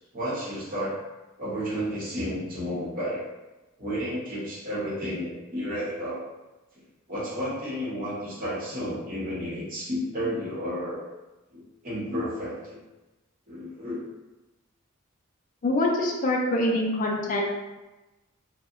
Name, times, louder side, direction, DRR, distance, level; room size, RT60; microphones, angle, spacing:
voice 1, 0.1-1.0 1.4-3.2 3.8-6.2 7.1-11.0 11.5-12.8 13.5-14.0, equal, 40° right, -7 dB, 0.8 m, -32 dB
voice 2, 15.6-17.4, left 1 dB, 40° left, 0 dB, 0.3 m, -24 dB
2.7 x 2.0 x 2.4 m, 1.1 s
head